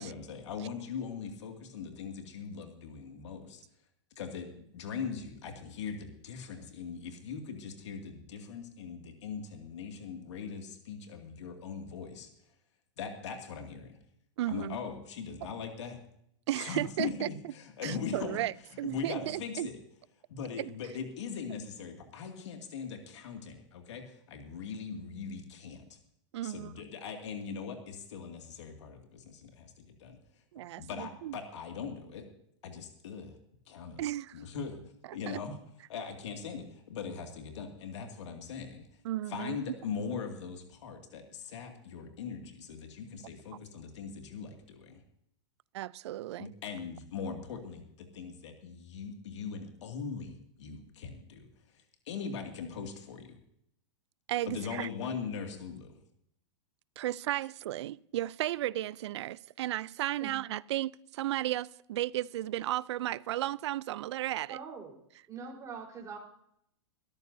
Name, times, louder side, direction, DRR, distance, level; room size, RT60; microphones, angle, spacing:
voice 1, 0.0-3.6 4.2-12.3 13.0-14.0 14.5-16.0 16.6-18.4 18.8-19.8 20.3-26.0 26.4-30.4 30.8-32.3 32.6-33.4 33.7-34.0 34.3-34.8 35.1-35.6 35.9-39.0 39.3-45.0 46.4-53.4 54.5-56.0, left 6 dB, 75° left, 2.4 m, -40 dB
voice 2, 14.4-14.8 16.5-17.3 17.8-19.7 20.6-20.7 26.3-26.7 30.5-31.4 34.0-34.4 35.3-35.4 39.0-39.6 45.7-46.5 54.3-54.9 57.0-64.6, right 14 dB, 70° right, 0.5 m, -34 dB
voice 3, 64.5-65.0 65.3-66.2, right 5 dB, 20° right, 4.4 m, -43 dB
22.0 x 13.5 x 2.8 m
hypercardioid pair, 125°, 15 cm